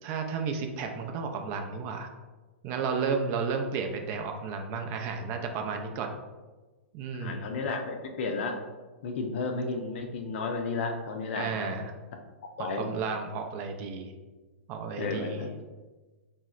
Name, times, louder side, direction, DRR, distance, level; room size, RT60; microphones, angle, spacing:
voice 1, 0.0-2.1 2.6-6.1 6.9-7.5 11.4-11.9 12.6-14.1 14.7-15.4, right 5 dB, 40° right, 4 dB, 0.4 m, -32 dB
voice 2, 7.2-8.6 9.0-11.8 12.6-12.9 15.0-15.5, left 3 dB, 60° left, 4 dB, 0.5 m, -32 dB
4.1 x 2.0 x 2.4 m, 1.2 s
hypercardioid pair, 115°, 7 cm